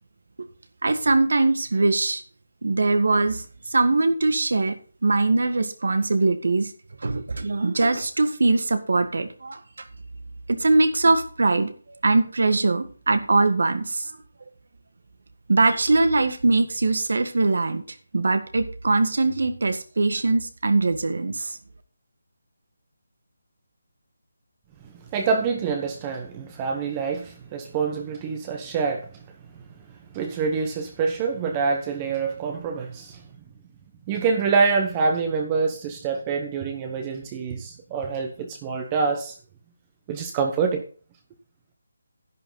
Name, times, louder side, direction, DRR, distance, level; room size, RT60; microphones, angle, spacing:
voice 1, 0.8-2.2 2.6-3.4 3.7-4.8 5.0-6.7 7.0-9.6 10.5-11.7 12.0-14.1 15.5-17.8 18.1-21.6, right 3 dB, 70° right, 1.6 m, -21 dB
voice 2, 24.8-29.2 30.1-33.2 34.1-39.4 40.1-40.8, right 5 dB, 20° right, 1.0 m, -26 dB
11.0 x 9.3 x 3.9 m
figure-of-eight pair, 165°, 0 cm